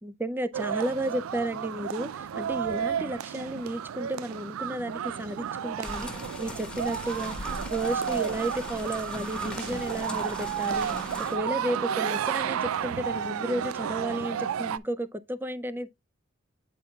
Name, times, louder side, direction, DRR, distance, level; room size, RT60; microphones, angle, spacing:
voice 1, 0.0-6.1 6.4-15.9, right 1 dB, 10° right, 0.5 m, -33 dB
sound 1, 0.5-14.8, right 8 dB, 85° right, 0.4 m, -32 dB
sound 2, 5.8-11.4, left 1 dB, 5° left, 1.2 m, -39 dB
8.8 x 5.4 x 2.3 m
head